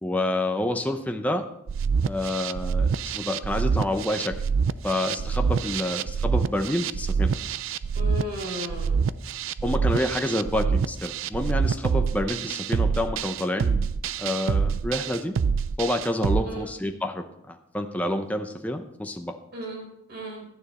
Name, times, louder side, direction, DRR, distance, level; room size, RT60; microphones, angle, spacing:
voice 1, 0.0-1.5 2.0-4.4 4.8-7.3 9.6-13.9 14.2-15.4 15.8-19.3, left 1 dB, 5° left, 5 dB, 0.6 m, -28 dB
sound 1, 1.7-16.4, right 6 dB, 70° right, 0.4 m, -26 dB
voice 2, 7.9-9.1 16.5-16.7 19.5-20.5, left 1 dB, 50° right, 0 dB, 4.1 m, -35 dB
12.0 x 9.9 x 4.2 m, 0.78 s
head